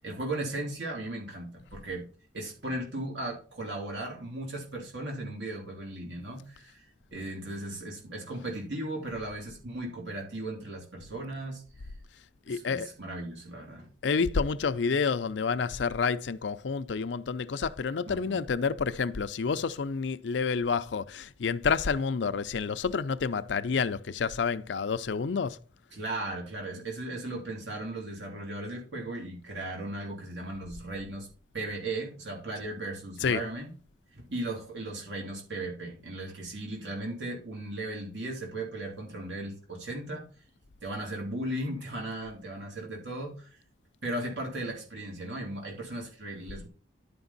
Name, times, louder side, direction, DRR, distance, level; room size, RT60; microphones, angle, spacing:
voice 1, 0.0-2.1 2.3-11.9 12.5-13.9 18.1-18.4 25.9-31.3 31.5-33.7 34.1-40.3 40.8-43.6 44.0-46.7, right 1 dB, 75° right, 2.7 m, -37 dB
voice 2, 12.5-12.9 14.0-25.6 33.2-33.4, left 5 dB, 75° left, 0.5 m, -29 dB
11.0 x 5.2 x 4.0 m
head